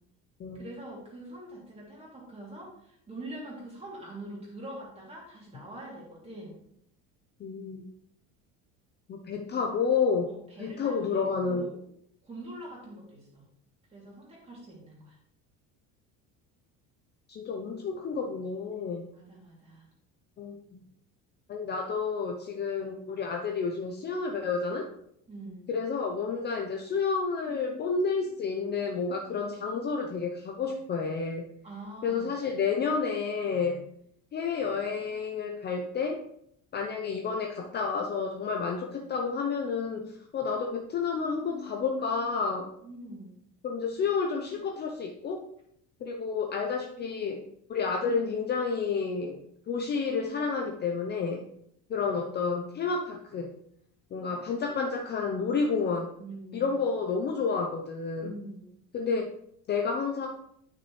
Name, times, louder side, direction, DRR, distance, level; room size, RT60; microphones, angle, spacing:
voice 1, 0.5-6.6 10.3-11.8 12.2-13.4 13.9-15.2 19.1-19.9 25.3-25.7 31.6-32.3 42.8-43.3 56.2-56.8 58.2-58.7, right 1 dB, 20° right, -4 dB, 2.7 m, -44 dB
voice 2, 7.4-7.8 9.1-10.3 10.6-11.7 17.3-19.1 20.4-20.6 21.5-24.9 25.7-31.5 32.0-33.8 34.3-36.2 36.7-42.7 43.6-45.5 46.0-47.4 47.7-49.4 49.7-51.4 51.9-53.5 54.1-56.1 56.5-58.3 58.9-59.3 59.7-60.3, left 5 dB, 30° left, 3 dB, 0.6 m, -30 dB
9.4 x 6.1 x 3.2 m, 0.71 s
cardioid pair, 155°, 34 cm